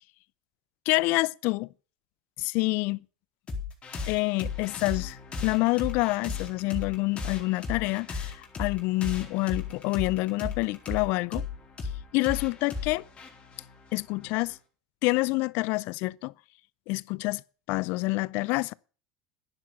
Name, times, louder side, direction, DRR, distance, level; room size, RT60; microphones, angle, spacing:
voice 1, 0.9-1.7 2.4-3.0 4.1-11.5 12.1-13.0 13.9-14.6 15.0-16.3 16.9-17.4 17.7-18.7, left 23 dB, 65° left, 0.5 m, -27 dB
sound 1, 3.5-14.6, left 5 dB, 30° left, 4.4 m, -36 dB
11.0 x 10.5 x 6.9 m
supercardioid pair, 105°, 4 cm